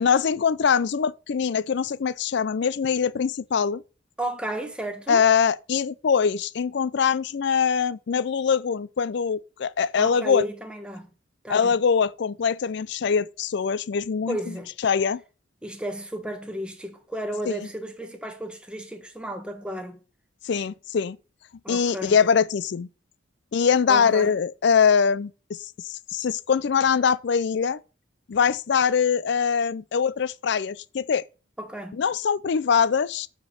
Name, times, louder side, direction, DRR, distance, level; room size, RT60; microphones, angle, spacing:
voice 1, 0.0-3.8 5.1-10.5 11.5-14.4 14.8-15.2 17.5-17.6 20.4-21.2 21.7-22.9 23.5-25.6 25.8-27.8 28.3-31.3 32.0-33.3, left 6 dB, 60° left, 0.4 m, -23 dB
voice 2, 4.2-5.2 10.0-11.1 11.4-11.7 14.3-14.7 15.6-20.0 21.6-22.2 23.9-24.3 31.6-32.0, equal, 5° right, 1.2 m, -33 dB
7.8 x 5.1 x 6.7 m
head